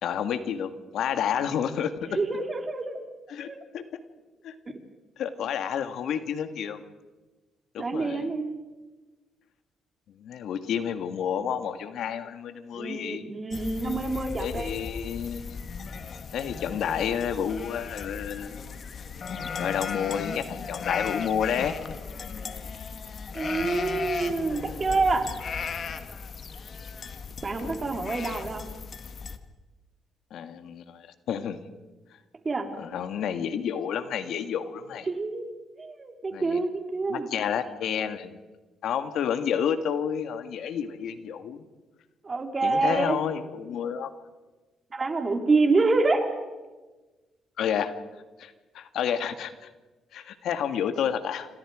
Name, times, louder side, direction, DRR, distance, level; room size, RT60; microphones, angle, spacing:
voice 1, 0.0-2.2 3.3-3.8 4.4-4.5 5.2-6.8 7.7-8.3 10.2-13.2 14.4-15.6 16.3-18.6 19.6-21.8 30.3-31.6 32.8-35.1 36.3-36.6 37.1-38.4 38.8-41.6 42.6-44.1 47.6-47.9 48.4-49.7 50.1-51.5, left 8 dB, 75° left, 9 dB, 1.8 m, -30 dB
voice 2, 2.1-3.0 3.5-3.6 7.8-8.6 12.7-14.7 23.3-25.3 27.4-28.7 32.4-32.7 35.1-35.5 35.8-37.3 42.2-43.2 44.9-46.3, right 3 dB, 30° right, 4 dB, 3.6 m, -27 dB
sound 1, 13.5-29.4, left 5 dB, 50° left, 1.8 m, -36 dB
28.0 x 26.0 x 5.0 m, 1.2 s
cardioid pair, 90°, 0 cm